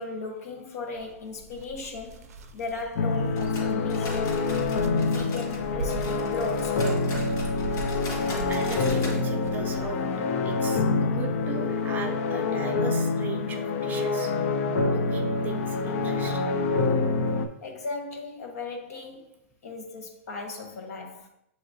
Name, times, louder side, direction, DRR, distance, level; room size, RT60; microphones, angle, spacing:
voice 1, 0.0-4.4 5.1-7.4 17.6-21.3, left 3 dB, 80° left, 0.9 m, -37 dB
sound 1, 0.9-10.2, right 2 dB, 85° right, 0.4 m, -41 dB
sound 2, 3.0-17.5, left 4 dB, 65° left, 0.4 m, -26 dB
sound 3, 3.3-5.6 5.9-9.2 9.5-9.6 10.0-10.1 10.6-10.7, left 2 dB, 40° left, 1.5 m, -40 dB
voice 2, 4.8-5.2 8.5-10.0 10.4-14.3 14.9-16.5 17.4-17.5, right 5 dB, 20° right, 0.5 m, -39 dB
6.6 x 2.8 x 2.7 m
hypercardioid pair, 135°, 8 cm